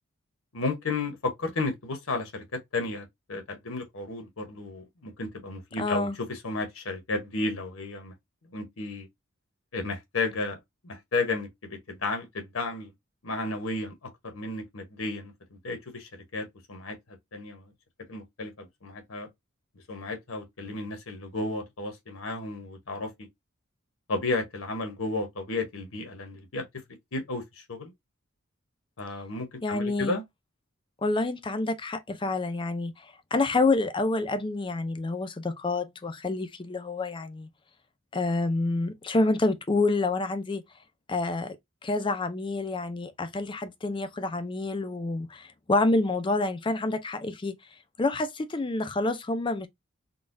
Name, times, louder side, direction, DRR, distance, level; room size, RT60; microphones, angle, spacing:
voice 1, 0.5-2.4 2.7-8.1 8.5-9.1 9.7-12.9 13.2-15.3 15.6-17.0 17.3-17.7 18.1-19.3 19.9-23.1 24.1-26.6 27.1-27.9 29.0-30.2, left 3 dB, 75° left, 1.0 m, -33 dB
voice 2, 5.8-6.2 29.6-30.1 31.0-37.5 38.1-40.6 41.1-41.6 41.8-47.5 48.0-49.7, left 2 dB, 25° left, 0.4 m, -28 dB
3.9 x 2.3 x 2.5 m
head